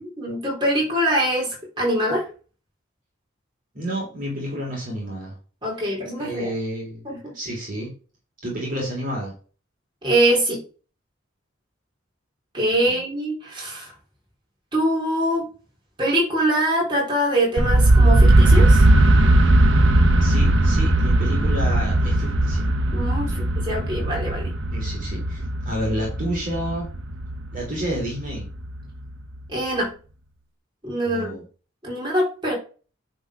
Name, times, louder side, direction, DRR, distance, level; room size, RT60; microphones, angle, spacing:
voice 1, 0.0-2.3 5.6-6.5 7.1-7.3 10.0-10.6 12.5-13.9 14.7-15.5 16.0-18.8 22.9-24.5 29.5-29.9 30.8-31.4 31.8-32.6, right 1 dB, 20° right, -3 dB, 3.7 m, -23 dB
voice 2, 3.7-5.3 6.2-7.9 8.4-9.3 12.9-13.0 20.2-22.7 23.3-23.4 24.7-26.9 27.5-28.4 31.0-31.4, equal, 40° right, -3 dB, 3.3 m, -30 dB
sound 1, 17.6-29.4, right 1 dB, 60° right, 1.0 m, -18 dB
9.9 x 4.1 x 5.0 m, 0.37 s
head